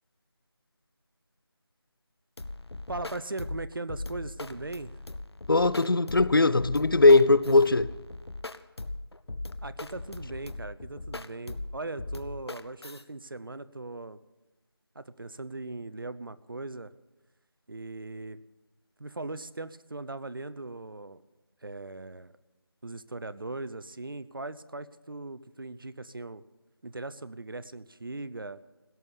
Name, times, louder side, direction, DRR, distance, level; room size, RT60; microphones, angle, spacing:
sound 1, 2.4-13.0, left 2 dB, 80° left, 0.9 m, -39 dB
voice 1, 2.9-4.9 9.6-14.2 14.9-16.9 17.7-18.4 19.0-21.2 21.6-22.3 22.8-26.4 26.8-28.6, right 2 dB, 60° right, 0.7 m, -39 dB
voice 2, 5.5-7.9, left 3 dB, 60° left, 0.6 m, -20 dB
16.5 x 7.2 x 9.7 m
figure-of-eight pair, 175°, 13 cm